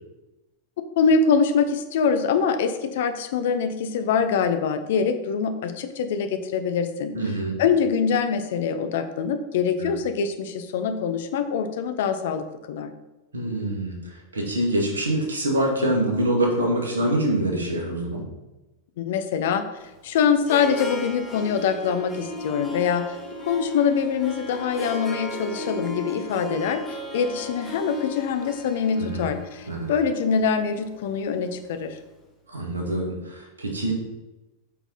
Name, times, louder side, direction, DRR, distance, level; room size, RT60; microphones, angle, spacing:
voice 1, 1.0-7.1 7.6-12.9 19.0-19.6 20.0-23.2 23.5-29.6 29.9-32.0, left 6 dB, 55° left, 8 dB, 0.8 m, -24 dB
voice 2, 7.1-7.6 9.8-9.9 13.3-18.3 29.0-29.3 29.7-29.9 32.5-33.9, right 1 dB, 70° right, 0 dB, 2.2 m, -25 dB
Harp, 19.8-32.0, left 1 dB, 5° left, 2.4 m, -36 dB
8.5 x 5.8 x 4.2 m, 1.0 s
figure-of-eight pair, 90°, 0 cm